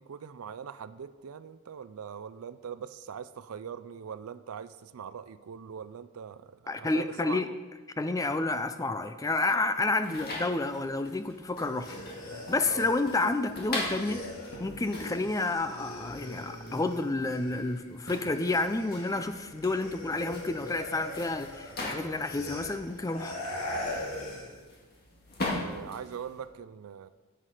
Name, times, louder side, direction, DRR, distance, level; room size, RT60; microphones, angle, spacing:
voice 1, 0.0-7.6 12.7-12.9 25.5-27.1, right 7 dB, 90° right, 13 dB, 0.4 m, -42 dB
voice 2, 6.7-7.5 8.0-12.0 12.3-14.2 14.6-23.4, left 2 dB, 15° left, 10 dB, 0.4 m, -30 dB
sound 1, 10.0-26.4, left 2 dB, 45° left, 1.9 m, -42 dB
sound 2, 11.6-17.8 18.1-24.6, left 1 dB, 85° left, 2.1 m, -41 dB
9.8 x 7.9 x 4.9 m, 1.3 s
head